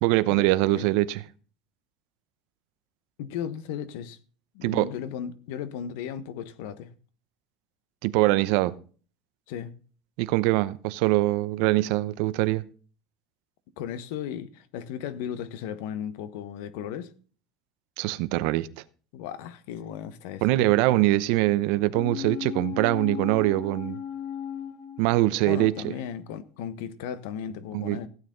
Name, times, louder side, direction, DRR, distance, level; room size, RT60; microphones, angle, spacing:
voice 1, 0.0-1.2 4.6-4.9 8.0-8.7 10.2-12.6 18.0-18.7 20.4-24.0 25.0-25.9 27.7-28.0, right 18 dB, 60° right, 0.8 m, -23 dB
voice 2, 3.2-4.2 4.5-6.9 9.5-9.7 13.8-17.1 19.1-20.6 25.4-28.1, left 9 dB, 75° left, 1.4 m, -35 dB
sound 1, 21.9-25.7 26.0-26.1, left 9 dB, 60° left, 2.0 m, -36 dB
16.0 x 9.2 x 4.0 m
cardioid pair, 175°, 0 cm